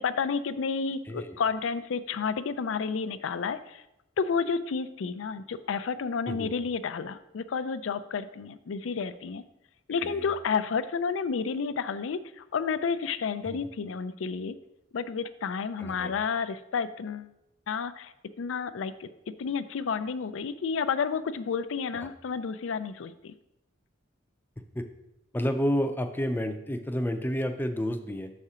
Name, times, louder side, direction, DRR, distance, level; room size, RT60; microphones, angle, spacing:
voice 1, 0.0-3.8 4.2-9.4 9.9-14.6 14.9-17.3 17.7-19.1 19.4-23.3, left 5 dB, 90° left, 13 dB, 0.4 m, -31 dB
voice 2, 15.8-16.1 21.9-22.1 24.7-24.9 25.3-28.3, equal, 10° left, 7 dB, 0.5 m, -30 dB
6.6 x 4.2 x 4.9 m, 0.88 s
head